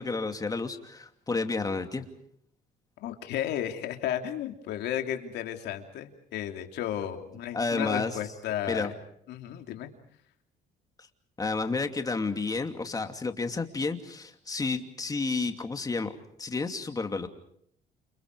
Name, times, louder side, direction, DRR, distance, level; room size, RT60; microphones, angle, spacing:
voice 1, 0.0-2.1 7.5-8.2 8.7-8.9 11.4-16.1 16.4-17.3, left 3 dB, 20° left, 6 dB, 2.7 m, -31 dB
voice 2, 3.0-8.9 9.3-9.9, left 11 dB, 80° left, 5 dB, 3.2 m, -33 dB
29.5 x 28.0 x 4.8 m, 0.68 s
cardioid pair, 110°, 17 cm